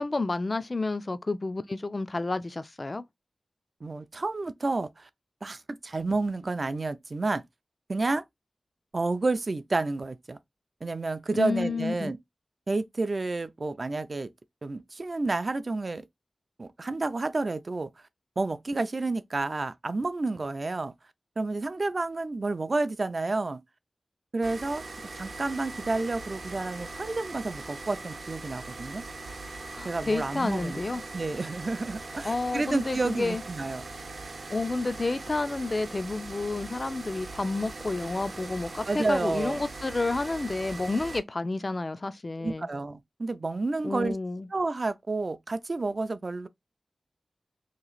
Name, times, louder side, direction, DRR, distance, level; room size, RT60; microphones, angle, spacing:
voice 1, 0.0-3.0 11.3-12.1 29.7-31.0 32.2-33.4 34.5-42.7 43.8-44.5, left 3 dB, 40° left, 0.3 m, -30 dB
voice 2, 3.8-5.1 5.4-7.4 7.9-8.2 8.9-10.4 10.8-12.2 12.7-14.3 14.6-16.1 16.6-17.9 18.4-20.9 21.4-23.6 24.3-24.8 25.1-29.0 29.8-30.8 31.1-33.8 38.9-39.6 42.4-44.2 44.5-46.5, right 3 dB, 50° right, 0.4 m, -30 dB
sound 1, 24.4-41.2, right 3 dB, 75° right, 0.7 m, -41 dB
2.9 x 2.4 x 3.9 m
wide cardioid pair, 90°, 0 cm